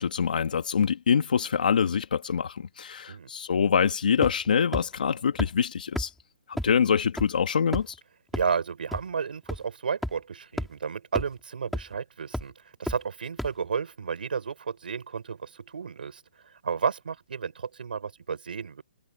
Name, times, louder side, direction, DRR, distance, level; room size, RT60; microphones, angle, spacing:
voice 1, 0.0-6.1 6.5-7.9, left 7 dB, 60° left, 2.2 m, -25 dB
sound 1, 4.2-4.5 4.7-4.8 5.4-5.5 5.9-6.0 6.6-6.7 7.2-7.3 7.7-7.9 8.3-8.4 8.9-9.0 9.5-9.6 10.0-10.1 10.6-10.7 11.1-11.2 11.7-11.9 12.3-12.4 12.9-13.0 13.4-13.5, equal, ahead, 3.7 m, -30 dB
voice 2, 8.3-12.5 12.8-18.8, right 6 dB, 75° right, 5.4 m, -32 dB
hypercardioid pair, 175°, 5 cm